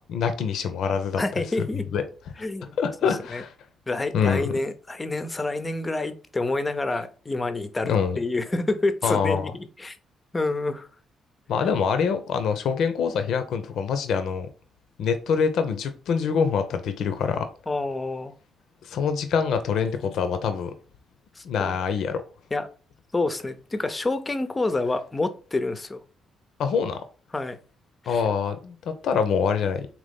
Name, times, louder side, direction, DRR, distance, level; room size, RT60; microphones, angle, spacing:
voice 1, 0.1-1.2 1.9-2.0 2.8-3.5 4.1-4.5 7.8-8.2 9.0-9.5 11.5-14.5 15.0-17.5 18.8-20.7 21.4-22.2 26.6-27.0 28.1-28.8 29.0-29.9, left 6 dB, 75° left, 0.6 m, -25 dB
voice 2, 1.2-1.9 2.4-3.4 3.9-10.0 10.3-10.9 17.7-18.3 21.3-21.4 22.5-22.7 23.1-26.0 27.3-27.6 28.0-28.2, left 2 dB, 20° left, 0.6 m, -28 dB
4.0 x 3.0 x 3.5 m
cardioid pair, 90°, 0 cm